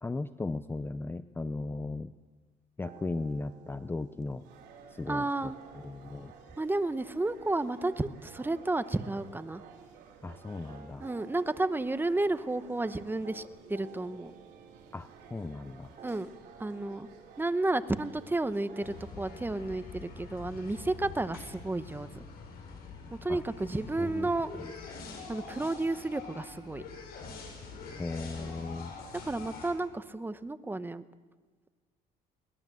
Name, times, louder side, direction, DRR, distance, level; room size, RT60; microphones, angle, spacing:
voice 1, 0.0-2.1 2.8-4.4 4.9-5.3 5.8-6.3 10.2-11.1 14.9-15.9 23.3-23.4 24.0-24.3 28.0-28.9, left 3 dB, 15° left, 13 dB, 0.6 m, -36 dB
sound 1, 2.8-21.7, right 7 dB, 50° right, 2.9 m, -55 dB
sound 2, 4.4-19.1, right 6 dB, 85° right, 3.9 m, -54 dB
voice 2, 5.1-5.5 6.5-9.6 11.0-14.3 16.0-16.3 16.6-17.1 17.4-22.1 23.1-24.6 25.3-26.8 29.2-31.0, right 2 dB, 10° right, 13 dB, 1.0 m, -32 dB
sound 3, 18.8-29.7, left 4 dB, 65° left, 7.4 m, -45 dB
22.0 x 19.0 x 7.7 m, 1.5 s
cardioid pair, 110°, 17 cm